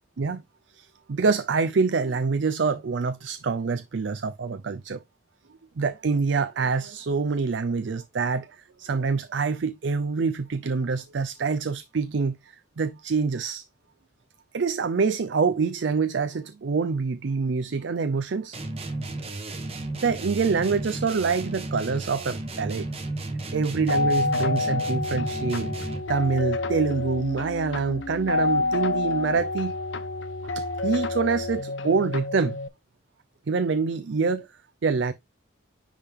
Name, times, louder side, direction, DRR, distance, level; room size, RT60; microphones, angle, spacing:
voice 1, 0.7-5.0 5.8-13.6 14.5-18.6 20.0-22.9 23.5-25.7 26.1-29.7 30.5-32.6 33.5-34.5 34.8-35.1, right 4 dB, 60° right, 0.4 m, -26 dB
sound 1, 18.5-26.2, right 2 dB, 30° right, 1.1 m, -33 dB
sound 2, 23.9-32.7, left 3 dB, 65° left, 0.8 m, -28 dB
10.0 x 3.6 x 3.5 m
head